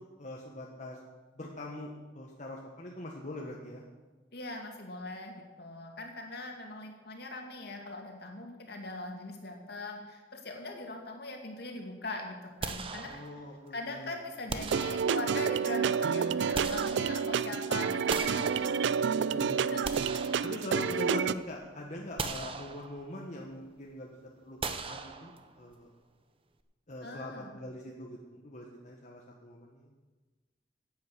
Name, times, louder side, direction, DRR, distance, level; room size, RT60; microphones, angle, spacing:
voice 1, 0.2-1.0 1.3-1.9 2.1-3.8 13.1-14.2 19.1-19.8 20.4-24.1 24.4-25.9 26.9-29.9, left 1 dB, 45° left, -2 dB, 1.3 m, -42 dB
voice 2, 4.3-13.4 13.7-18.9 19.7-20.0 27.0-27.6, left 2 dB, 60° left, 2 dB, 2.3 m, -41 dB
sound 1, 12.6-13.7 14.5-15.5 16.2-17.5 18.1-19.2 19.6-21.1 21.5-21.6 22.2-23.2 24.6-25.7, right 4 dB, 30° right, 0.8 m, -39 dB
sound 2, 14.6-21.3, right 6 dB, 75° right, 0.4 m, -29 dB
10.5 x 8.5 x 8.2 m, 1.3 s
head